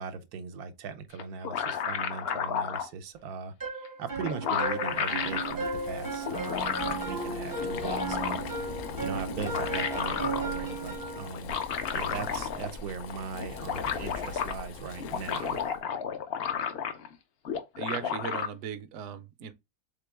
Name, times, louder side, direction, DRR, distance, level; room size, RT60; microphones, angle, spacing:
voice 1, 0.0-8.4 9.0-11.6 11.9-15.6, right 5 dB, 80° right, 1.1 m, -39 dB
sound 1, 1.2-2.9 3.9-4.0 4.2-5.6 6.2-7.1 7.6-8.6 9.3-10.5 11.3-12.8 13.1-13.2 13.4-14.5 15.0-17.1 17.5-18.5, left 7 dB, 60° left, 0.7 m, -32 dB
sound 2, 3.6-11.3, right 3 dB, 20° right, 0.5 m, -35 dB
Boiling, 4.5-15.8, left 6 dB, 75° left, 1.1 m, -41 dB
voice 2, 17.8-19.5, right 7 dB, 65° right, 0.8 m, -37 dB
3.7 x 3.6 x 3.4 m
omnidirectional pair, 1.6 m